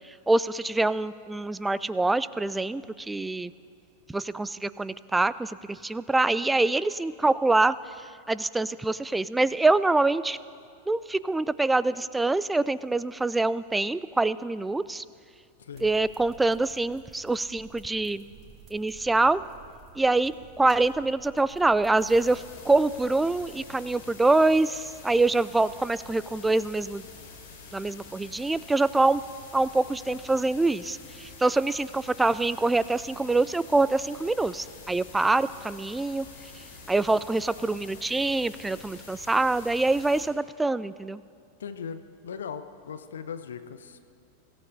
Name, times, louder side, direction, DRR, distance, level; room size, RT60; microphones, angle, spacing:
voice 1, 0.1-3.5 4.1-7.8 8.3-10.4 10.9-15.0 15.8-18.3 18.7-19.4 20.0-27.0 27.7-29.2 29.5-36.3 36.9-41.2, right 2 dB, 10° right, 18 dB, 0.3 m, -25 dB
voice 2, 15.6-15.9 41.6-44.0, left 7 dB, 65° left, 10 dB, 0.7 m, -39 dB
sound 1, 15.7-23.8, right 4 dB, 30° right, 2.4 m, -52 dB
sound 2, 22.0-40.3, left 4 dB, 50° left, 3.8 m, -47 dB
24.0 x 14.0 x 2.7 m, 2.5 s
figure-of-eight pair, 90°, 0 cm